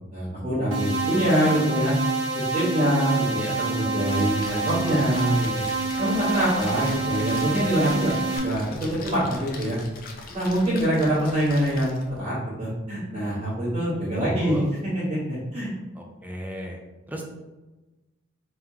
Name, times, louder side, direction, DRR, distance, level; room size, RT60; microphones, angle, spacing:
voice 1, 0.1-1.9 2.5-3.4 3.7-5.6 6.0-9.8 10.3-14.6 14.9-15.7, equal, 25° right, -12 dB, 1.3 m, -24 dB
sound 1, 0.7-8.4, right 3 dB, 80° right, 1.0 m, -27 dB
Splash splatter, 4.0-12.2, left 3 dB, 45° left, 0.5 m, -42 dB
voice 2, 14.2-14.7 16.0-16.8 17.1-17.2, equal, 10° right, 0 dB, 0.5 m, -34 dB
3.5 x 2.9 x 3.5 m, 1.1 s
head